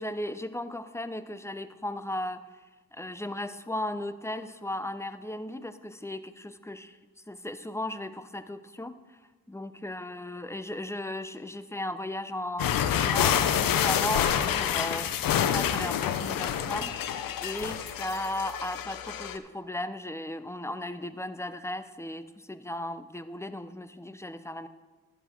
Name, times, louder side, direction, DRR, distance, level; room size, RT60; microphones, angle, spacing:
voice 1, 0.0-2.4 2.9-7.0 7.3-9.2 9.5-16.9 17.4-24.7, left 1 dB, 10° left, 12 dB, 0.7 m, -36 dB
sound 1, 12.6-19.4, left 9 dB, 75° left, 0.7 m, -27 dB
11.0 x 8.5 x 4.5 m, 1.2 s
supercardioid pair, 45°, 34 cm